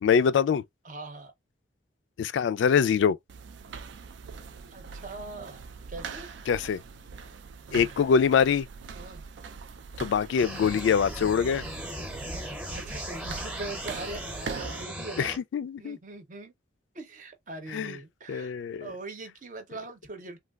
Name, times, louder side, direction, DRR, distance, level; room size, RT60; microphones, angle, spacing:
voice 1, 0.0-0.6 2.2-3.2 6.5-6.8 7.7-8.7 10.0-11.6 15.2-16.0 17.7-18.0 18.3-18.9, left 7 dB, 85° left, 0.3 m, -24 dB
voice 2, 0.8-1.3 4.7-5.6 5.9-6.3 9.0-9.2 12.7-15.4 15.8-16.5 16.9-18.5 18.8-20.4, right 3 dB, 45° right, 0.7 m, -41 dB
sound 1, 3.3-14.8, right 5 dB, 75° right, 0.4 m, -42 dB
sound 2, 10.4-15.4, equal, 10° right, 0.7 m, -38 dB
3.2 x 2.3 x 2.3 m
head